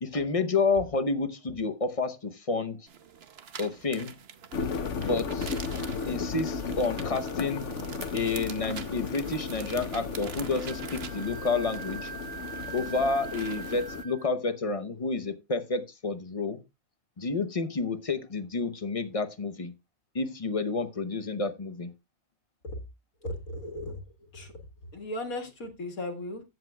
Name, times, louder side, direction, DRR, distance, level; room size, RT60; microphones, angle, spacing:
voice 1, 0.0-2.8 3.6-4.1 5.0-5.6 6.1-7.7 8.1-12.1 12.7-16.6 17.2-19.7 20.1-21.9, left 3 dB, 30° left, 0.7 m, -30 dB
sound 1, 2.9-13.8, right 7 dB, 50° right, 1.0 m, -46 dB
sound 2, 4.5-14.0, left 5 dB, 60° left, 1.2 m, -35 dB
Wind instrument woodwind instrument, 10.6-14.4, right 7 dB, 85° right, 1.2 m, -42 dB
voice 2, 23.2-24.6 24.9-26.4, left 1 dB, 85° left, 2.2 m, -37 dB
15.5 x 7.8 x 2.3 m
omnidirectional pair, 1.5 m